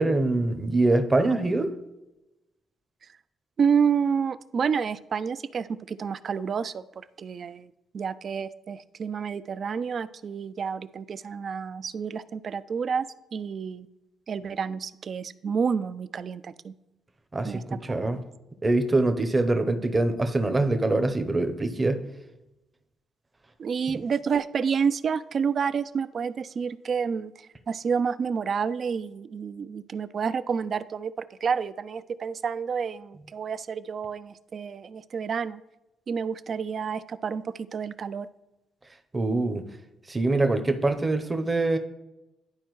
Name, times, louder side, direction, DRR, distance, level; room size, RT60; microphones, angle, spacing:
voice 1, 0.0-1.7 17.3-18.2 18.6-22.0 39.1-39.6 40.1-41.8, right 2 dB, 25° right, 7 dB, 0.7 m, -24 dB
voice 2, 3.6-13.1 13.3-13.9 14.3-16.7 17.4-18.0 23.6-35.6 36.1-38.3, right 6 dB, 50° right, 15 dB, 0.3 m, -29 dB
11.5 x 4.4 x 3.1 m, 0.97 s
cardioid pair, 90°, 0 cm